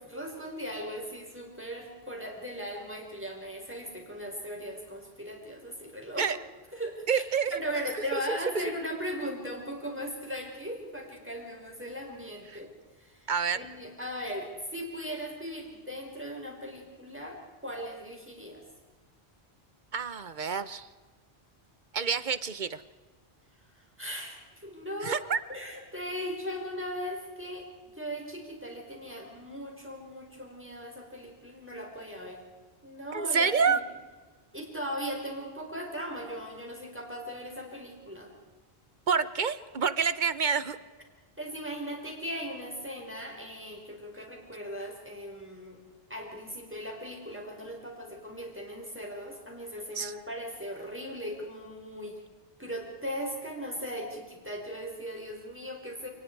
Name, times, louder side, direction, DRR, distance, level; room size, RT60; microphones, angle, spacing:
voice 1, 0.0-6.3 6.7-7.2 7.5-12.7 13.0-13.3 13.5-18.6 24.0-25.2 25.5-32.4 32.8-33.8 34.5-38.3 41.4-45.8 46.1-52.2 52.6-56.1, equal, 10° right, 0 dB, 5.0 m, -38 dB
voice 2, 7.1-7.6 8.1-8.4 13.3-13.6 19.9-20.9 21.9-22.8 25.0-25.4 33.1-33.8 39.1-40.8 49.9-50.1, right 6 dB, 50° right, 15 dB, 1.1 m, -28 dB
29.0 x 20.0 x 4.8 m, 1.3 s
omnidirectional pair, 1.1 m